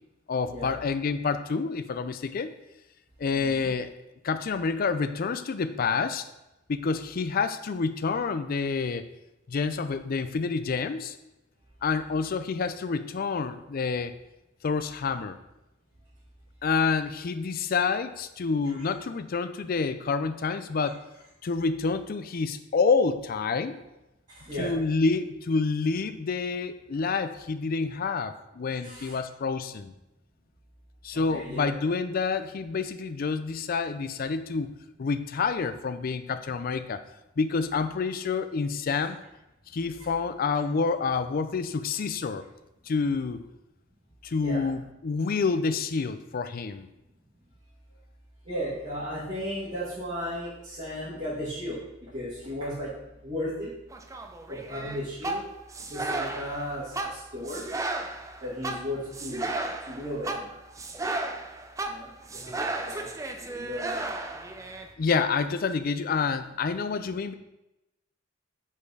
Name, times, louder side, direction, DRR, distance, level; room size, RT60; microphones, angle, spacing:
voice 1, 0.3-2.5 3.2-3.9 4.2-6.3 6.7-9.1 9.5-11.2 11.8-14.1 14.6-15.4 16.6-21.0 21.4-23.8 24.6-29.9 31.0-34.7 35.0-37.0 37.4-39.2 39.7-42.4 42.9-43.4 44.2-46.9 65.0-67.3, left 4 dB, 45° left, 11 dB, 0.4 m, -28 dB
voice 2, 24.3-24.7 28.8-29.1 31.1-31.7 39.0-39.1 40.0-40.1 44.4-44.7 48.4-52.9 53.2-53.7 54.5-55.4 55.9-57.6 58.4-59.6 59.9-60.6 61.8-64.0, equal, 35° right, -11 dB, 1.9 m, -35 dB
sound 1, 53.9-64.9, right 2 dB, 15° right, 0.4 m, -34 dB
5.3 x 4.4 x 4.8 m, 0.93 s
head